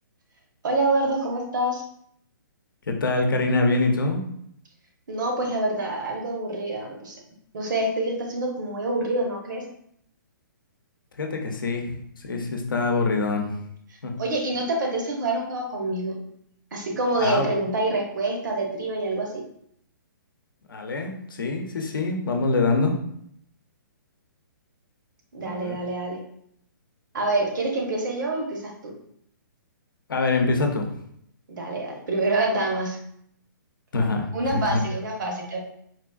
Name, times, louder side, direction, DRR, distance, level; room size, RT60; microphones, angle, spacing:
voice 1, 0.6-1.8 5.1-7.2 7.5-9.6 14.2-16.2 16.7-19.4 25.3-26.2 27.1-28.9 31.5-33.0 34.3-35.6, right 2 dB, 65° right, 1 dB, 0.9 m, -26 dB
voice 2, 2.9-4.2 11.2-13.5 14.0-14.1 17.2-17.5 20.7-22.9 25.4-25.8 30.1-30.9 33.9-34.8, left 3 dB, 90° left, 3 dB, 0.7 m, -24 dB
4.0 x 2.5 x 2.3 m, 0.71 s
hypercardioid pair, 155°, 11 cm